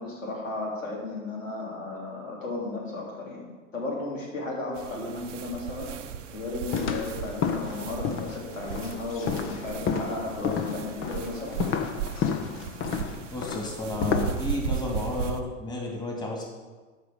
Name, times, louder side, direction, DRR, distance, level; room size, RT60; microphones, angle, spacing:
voice 1, 0.0-3.5 3.7-5.9 6.3-11.6, left 2 dB, 85° left, -3 dB, 3.4 m, -34 dB
sound 1, 4.7-15.4, right 8 dB, 70° right, 1.0 m, -36 dB
sound 2, 6.7-14.7, left 6 dB, 35° left, 1.0 m, -31 dB
voice 2, 13.3-16.5, left 2 dB, 10° left, -1 dB, 2.5 m, -32 dB
12.5 x 5.3 x 6.9 m, 1.3 s
figure-of-eight pair, 85°, 38 cm